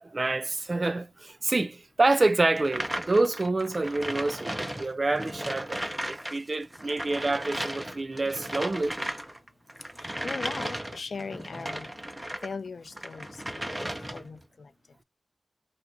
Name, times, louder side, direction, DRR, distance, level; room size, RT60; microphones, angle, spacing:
voice 1, 0.0-8.9, right 2 dB, 45° right, 0.3 m, -27 dB
sound 1, 2.5-6.4 6.6-12.5 12.9-14.4, right 1 dB, 15° right, 0.7 m, -36 dB
voice 2, 10.0-11.9 12.4-14.7, left 4 dB, 90° left, 0.4 m, -39 dB
2.8 x 2.6 x 3.5 m
wide cardioid pair, 90°, 0 cm